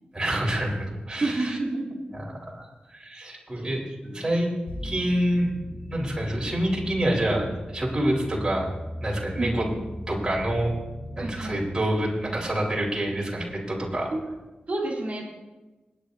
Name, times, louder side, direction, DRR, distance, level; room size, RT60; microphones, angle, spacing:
voice 1, 0.1-1.6 2.4-4.6 4.8-5.5 5.9-7.4 7.7-8.6 9.0-9.6 10.1-10.7 11.2-14.1, right 1 dB, 20° right, -4 dB, 4.4 m, -27 dB
voice 2, 1.2-2.0 3.5-3.7 4.0-4.1 9.4-9.8 11.2-11.6 14.7-15.2, right 2 dB, 45° right, -1 dB, 3.5 m, -29 dB
sound 1, 4.7-14.2, equal, 50° left, 3.3 m, -40 dB
28.0 x 10.0 x 2.8 m, 1.1 s
wide cardioid pair, 110°, 3 cm